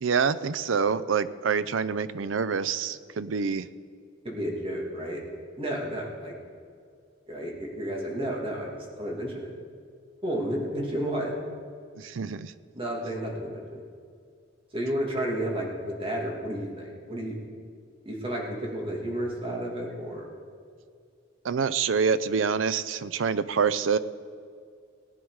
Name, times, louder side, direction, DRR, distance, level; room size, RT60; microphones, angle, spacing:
voice 1, 0.0-3.7 12.0-12.5 21.4-24.0, right 6 dB, 85° right, 15 dB, 0.5 m, -26 dB
voice 2, 4.2-5.2 5.6-6.4 7.3-9.5 10.2-11.3 12.7-13.9 14.7-17.4 18.0-20.3, right 1 dB, 30° right, -1 dB, 2.3 m, -32 dB
18.5 x 9.5 x 4.8 m, 2.3 s
head